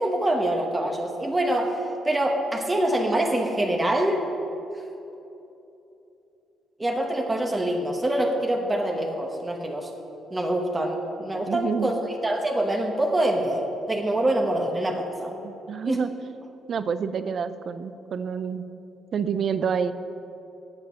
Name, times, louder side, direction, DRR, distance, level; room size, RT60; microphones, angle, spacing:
voice 1, 0.0-4.3 6.8-9.9 10.3-12.0 12.2-15.4 15.8-16.0, right 1 dB, 20° right, 1 dB, 1.1 m, -25 dB
voice 2, 11.5-11.9 15.4-16.1 16.7-18.7 19.1-19.9, right 6 dB, 55° right, 12 dB, 0.5 m, -28 dB
8.7 x 7.5 x 7.3 m, 2.9 s
cardioid pair, 90°, 0 cm